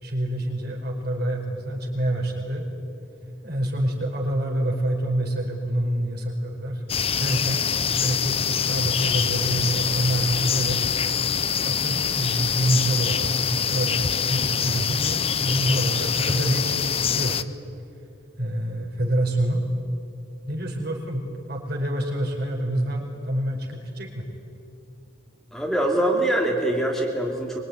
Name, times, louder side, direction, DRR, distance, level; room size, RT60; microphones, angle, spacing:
voice 1, 0.0-2.7 3.4-6.8 7.2-7.7 7.9-10.8 11.6-17.4 18.4-19.6 20.5-24.3, right 1 dB, 50° right, 0 dB, 5.1 m, -27 dB
sound 1, 6.9-17.4, left 7 dB, 30° left, 0.7 m, -25 dB
voice 2, 25.5-27.6, right 1 dB, ahead, -1 dB, 2.6 m, -23 dB
25.0 x 24.0 x 9.8 m, 2.7 s
head